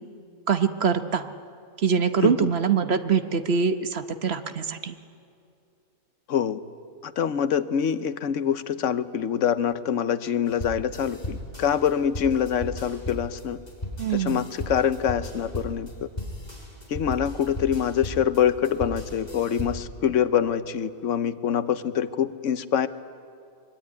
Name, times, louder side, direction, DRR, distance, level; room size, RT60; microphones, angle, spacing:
voice 1, 0.5-1.3 1.8-5.0 14.0-14.4, right 6 dB, 60° right, 9 dB, 1.3 m, -24 dB
voice 2, 2.2-2.5 6.3-6.6 7.0-13.6 14.1-16.1 16.9-22.9, left 8 dB, 80° left, 13 dB, 1.2 m, -25 dB
sound 1, 10.5-20.0, left 1 dB, 35° left, 4.4 m, -36 dB
23.5 x 23.5 x 9.6 m, 2.4 s
omnidirectional pair, 1.3 m